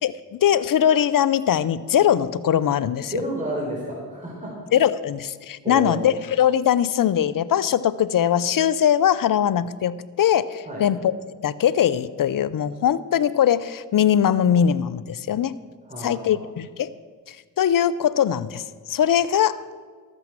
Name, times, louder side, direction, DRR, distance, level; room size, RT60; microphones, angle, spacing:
voice 1, 0.0-3.1 4.7-11.1 11.4-15.6 16.0-16.9 17.6-18.6 18.9-19.6, left 9 dB, 55° left, 18 dB, 0.7 m, -21 dB
voice 2, 3.1-4.6 5.6-6.1 10.7-10.8 15.9-16.4, right 1 dB, 20° right, -3 dB, 4.1 m, -30 dB
13.0 x 8.4 x 7.6 m, 1.5 s
supercardioid pair, 45°, 40 cm